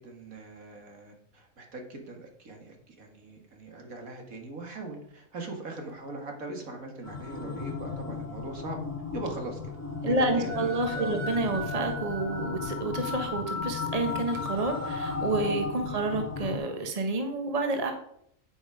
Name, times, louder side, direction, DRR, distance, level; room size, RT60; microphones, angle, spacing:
voice 1, 0.0-8.8 9.1-9.7 10.1-11.2 15.9-16.0, right 2 dB, 75° right, 2 dB, 2.4 m, -41 dB
sound 1, 7.0-16.6, left 4 dB, 10° left, 1.5 m, -34 dB
voice 2, 10.0-17.9, right 2 dB, 30° right, 5 dB, 1.4 m, -29 dB
9.8 x 8.7 x 5.0 m, 0.69 s
omnidirectional pair, 1.5 m